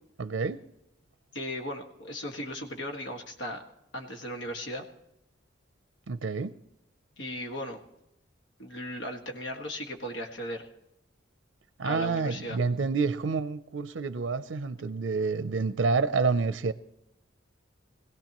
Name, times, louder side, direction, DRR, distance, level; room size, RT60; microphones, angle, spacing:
voice 1, 0.2-0.7 6.1-6.5 11.8-16.7, right 4 dB, 75° right, 0.5 m, -28 dB
voice 2, 1.3-3.6 3.9-4.9 7.2-7.8 8.6-10.7 11.8-12.6, left 1 dB, 80° left, 1.8 m, -37 dB
22.5 x 16.5 x 3.0 m
head